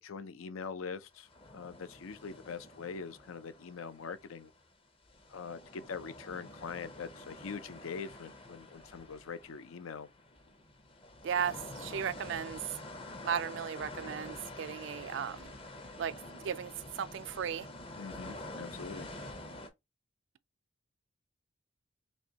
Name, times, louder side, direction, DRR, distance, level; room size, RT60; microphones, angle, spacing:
voice 1, 0.0-4.5 5.3-10.1 18.0-19.1, left 5 dB, 80° left, 0.5 m, -43 dB
sound 1, 1.2-4.7 5.0-19.7, left 1 dB, 25° left, 0.6 m, -48 dB
voice 2, 11.2-12.6 13.2-15.5 16.0-17.7, right 8 dB, 60° right, 0.3 m, -36 dB
5.2 x 2.2 x 2.8 m
head